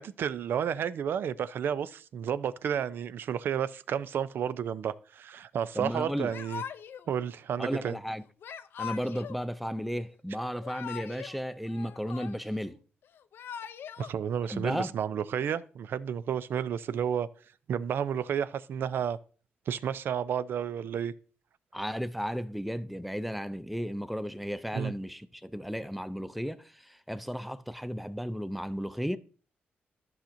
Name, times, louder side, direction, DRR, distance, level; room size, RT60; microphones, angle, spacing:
voice 1, 0.0-6.6 7.1-8.0 14.0-17.3 17.7-19.2 19.7-21.1 24.7-24.9, right 8 dB, 70° right, 0.4 m, -31 dB
voice 2, 5.7-6.3 7.6-8.2 8.8-12.8 14.5-14.9 21.7-29.2, equal, ahead, 0.5 m, -34 dB
Yell / Crying sobbing, 6.3-7.1 8.4-9.4 10.4-11.4 11.7-12.6 13.2-14.1, left 8 dB, 70° left, 0.4 m, -41 dB
13.0 x 5.7 x 2.6 m
cardioid pair, 110°, 4 cm